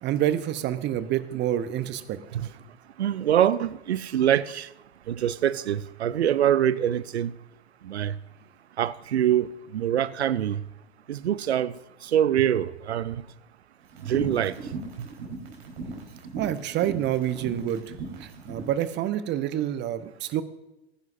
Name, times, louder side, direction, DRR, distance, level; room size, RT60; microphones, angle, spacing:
voice 1, 0.0-2.4 16.3-17.8 18.2-20.4, right 11 dB, 35° right, 0.8 m, -28 dB
voice 2, 3.0-4.7 5.1-7.3 7.8-8.2 8.8-9.5 9.7-10.6 11.1-11.8 12.0-13.2 14.1-14.6, right 10 dB, 80° right, 0.5 m, -24 dB
sound 1, 13.9-18.8, right 4 dB, 60° right, 4.1 m, -37 dB
20.0 x 10.5 x 2.6 m
figure-of-eight pair, 85°, 32 cm